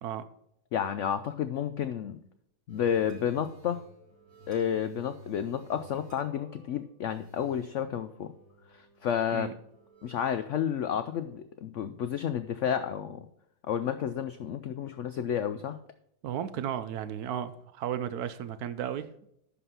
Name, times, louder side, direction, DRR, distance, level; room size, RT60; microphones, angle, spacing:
voice 1, 0.7-2.2 2.7-3.8 4.5-8.3 8.7-9.5 10.0-13.3 13.7-15.8, left 9 dB, 90° left, 10 dB, 0.6 m, -31 dB
sound 1, 2.7-11.3, right 2 dB, 30° right, 4.2 m, -53 dB
voice 2, 16.2-19.1, right 9 dB, 70° right, 11 dB, 1.0 m, -34 dB
11.0 x 4.2 x 5.5 m, 0.73 s
omnidirectional pair, 1.9 m